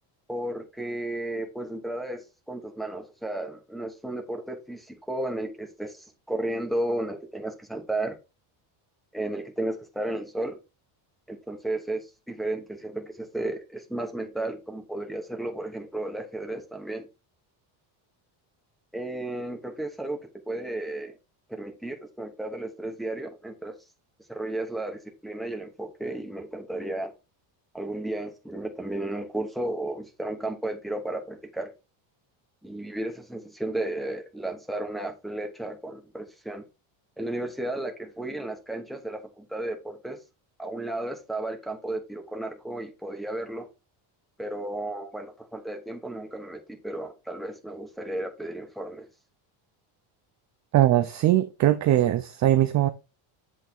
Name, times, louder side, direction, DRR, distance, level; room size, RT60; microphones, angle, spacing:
voice 1, 0.3-8.2 9.1-10.6 11.3-17.1 18.9-21.1 21.5-23.8 24.3-27.1 27.7-31.7 32.6-36.6 37.2-40.2 40.6-43.7 44.4-49.1, right 1 dB, ahead, 0.9 m, -33 dB
voice 2, 50.7-52.9, right 13 dB, 40° right, 0.4 m, -21 dB
8.3 x 3.3 x 4.3 m
cardioid pair, 160°, 50 cm